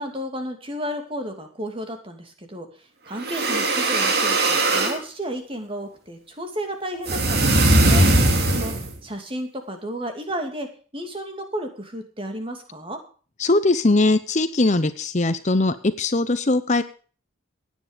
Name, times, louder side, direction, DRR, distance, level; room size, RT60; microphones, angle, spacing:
voice 1, 0.0-8.0 8.4-8.7 9.0-10.7 10.9-13.0, equal, 25° right, 5 dB, 2.6 m, -32 dB
sound 1, 3.2-5.0 7.1-8.9, right 2 dB, 50° right, 2.7 m, -19 dB
voice 2, 13.4-16.8, left 2 dB, 35° left, 12 dB, 0.8 m, -20 dB
17.5 x 9.5 x 5.1 m, 0.39 s
head